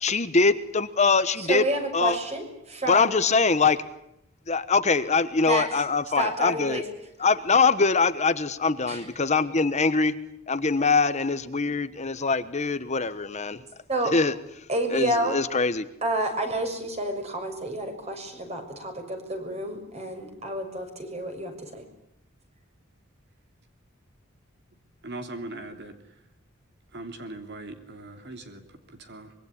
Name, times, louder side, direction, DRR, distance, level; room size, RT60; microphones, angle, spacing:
voice 1, 0.0-1.6 1.9-2.2 2.9-3.8 4.5-6.8 7.2-10.1 10.5-13.6 14.1-14.3 14.9-15.9, left 4 dB, 35° left, 12 dB, 1.2 m, -23 dB
voice 2, 1.4-3.2 5.4-5.8 6.1-6.9 8.9-9.1 11.6-11.7 13.9-14.1 14.7-15.4 16.0-21.8, right 1 dB, 30° right, 5 dB, 6.3 m, -29 dB
voice 3, 25.0-26.0 26.9-29.3, right 2 dB, 55° right, 7 dB, 3.0 m, -40 dB
25.0 x 23.0 x 10.0 m, 0.78 s
head